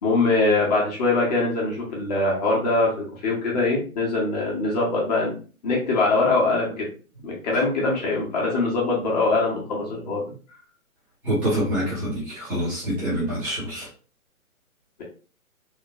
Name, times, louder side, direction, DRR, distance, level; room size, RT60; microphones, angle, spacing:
voice 1, 0.0-5.3 5.6-6.9 7.2-10.2, left 3 dB, 30° left, -3 dB, 1.1 m, -23 dB
voice 2, 11.2-13.9, equal, 5° right, -9 dB, 0.6 m, -26 dB
3.7 x 2.8 x 2.9 m, 0.38 s
hypercardioid pair, 160°, 44 cm